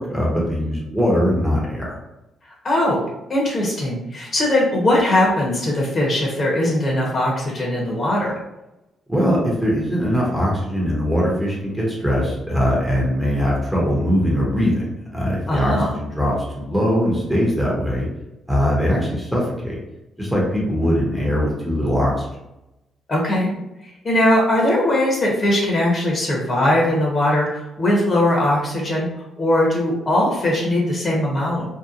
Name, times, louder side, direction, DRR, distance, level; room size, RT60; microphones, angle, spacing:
voice 1, 0.0-2.0 9.1-18.1 18.5-19.8 20.2-22.3, equal, ahead, -4 dB, 0.7 m, -21 dB
voice 2, 2.6-3.0 3.3-8.3 15.5-15.9 23.1-23.5 24.0-29.1 29.4-31.7, left 1 dB, 40° left, -3 dB, 0.9 m, -20 dB
2.8 x 2.1 x 2.4 m, 0.93 s
cardioid pair, 90°, 0 cm